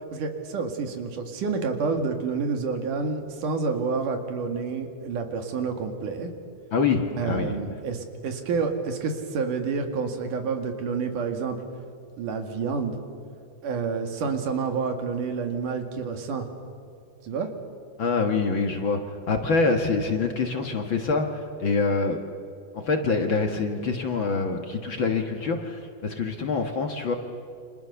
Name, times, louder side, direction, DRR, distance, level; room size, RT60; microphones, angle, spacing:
voice 1, 0.1-6.3 7.2-11.6 12.2-13.0 13.6-16.5 17.2-17.5, right 5 dB, 80° right, 5 dB, 3.7 m, -29 dB
voice 2, 6.7-7.6 18.0-19.0 19.3-22.2 22.7-27.1, left 4 dB, 45° left, 5 dB, 1.9 m, -25 dB
29.5 x 26.0 x 7.0 m, 2.5 s
omnidirectional pair, 3.6 m